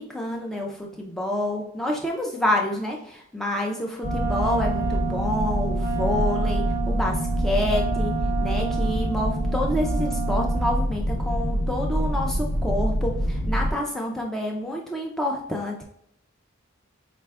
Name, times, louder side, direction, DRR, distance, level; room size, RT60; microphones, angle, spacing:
voice 1, 0.0-8.1 8.4-15.8, left 1 dB, ahead, -1 dB, 0.3 m, -28 dB
sound 1, 4.0-13.7, equal, 90° left, 1.0 m, -26 dB
Wind instrument woodwind instrument, 4.0-10.8, right 7 dB, 15° right, 0.8 m, -31 dB
4.9 x 2.2 x 3.4 m, 0.73 s
head